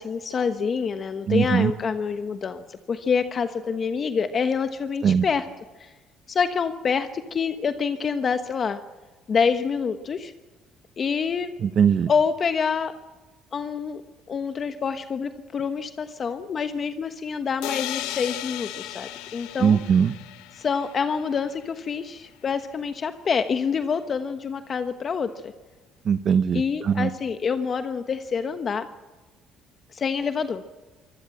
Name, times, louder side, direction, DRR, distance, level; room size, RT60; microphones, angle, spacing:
voice 1, 0.0-5.5 5.8-5.9 6.3-8.8 9.3-10.3 11.0-11.5 12.1-12.9 13.5-14.0 14.3-19.8 20.6-25.5 26.5-28.9 29.9-30.6, left 6 dB, 40° left, 8 dB, 1.2 m, -26 dB
voice 2, 1.3-1.7 5.0-5.2 11.6-12.1 19.6-20.1 26.1-27.1, right 7 dB, 45° right, 12 dB, 0.7 m, -20 dB
sound 1, 17.6-21.4, left 15 dB, 90° left, 0.9 m, -35 dB
24.5 x 17.0 x 7.7 m, 1.2 s
cardioid pair, 100°, 0 cm